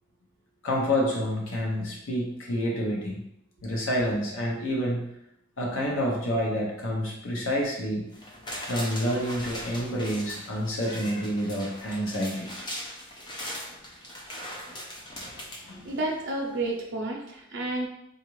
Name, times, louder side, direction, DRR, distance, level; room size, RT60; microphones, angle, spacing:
voice 1, 0.6-3.2 3.6-5.1 5.6-8.0 8.6-12.5 15.6-15.9, equal, 70° left, -2 dB, 0.7 m, -28 dB
sound 1, 8.1-16.3 16.7-16.8, equal, 25° left, 0.5 m, -40 dB
voice 2, 15.8-17.9, right 2 dB, 60° right, -1 dB, 0.6 m, -30 dB
3.9 x 2.4 x 3.0 m, 0.79 s
head